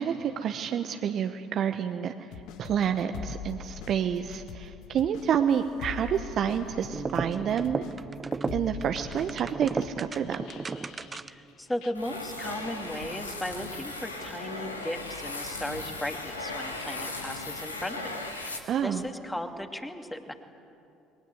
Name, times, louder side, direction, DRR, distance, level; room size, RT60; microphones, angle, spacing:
voice 1, 0.0-2.1 2.6-7.8 8.5-10.4 18.6-19.0, right 8 dB, 50° right, 7 dB, 1.1 m, -28 dB
sound 1, 2.3-11.5 11.8-11.9, left 8 dB, 60° left, 1.3 m, -43 dB
sound 2, 6.9-11.5, right 4 dB, 25° right, 0.9 m, -35 dB
voice 2, 11.3-20.3, left 1 dB, 10° left, 5 dB, 2.5 m, -36 dB
sound 3, 11.9-19.1, left 2 dB, 90° left, 1.7 m, -37 dB
28.0 x 22.0 x 8.1 m, 2.6 s
figure-of-eight pair, 55°, 0 cm